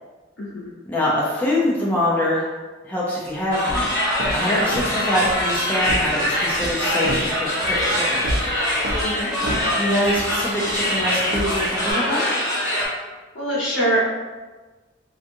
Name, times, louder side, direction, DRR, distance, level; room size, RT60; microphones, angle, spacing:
voice 1, 0.4-0.7 9.0-9.3 13.3-14.0, right 1 dB, 70° left, -6 dB, 0.9 m, -23 dB
voice 2, 0.9-2.4 2.8-3.9 4.3-8.2 9.7-12.3, left 1 dB, 10° left, -6 dB, 0.4 m, -24 dB
sound 1, 3.2-11.9, right 1 dB, 60° right, 0.4 m, -31 dB
sound 2, 3.5-12.9, left 1 dB, 20° right, 1.0 m, -23 dB
2.6 x 2.4 x 2.6 m, 1.3 s
head